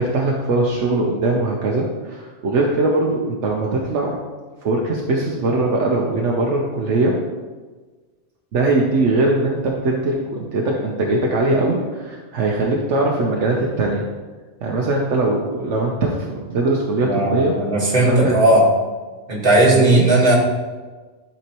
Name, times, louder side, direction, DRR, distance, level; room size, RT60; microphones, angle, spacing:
voice 1, 0.0-4.2 4.6-7.2 8.5-14.1 14.6-17.6 18.1-18.4 19.6-20.1, right 2 dB, 80° right, -1 dB, 1.1 m, -21 dB
voice 2, 17.0-18.7 19.3-20.4, right 1 dB, 50° right, -3 dB, 1.8 m, -16 dB
11.0 x 4.4 x 2.9 m, 1.3 s
omnidirectional pair, 1.2 m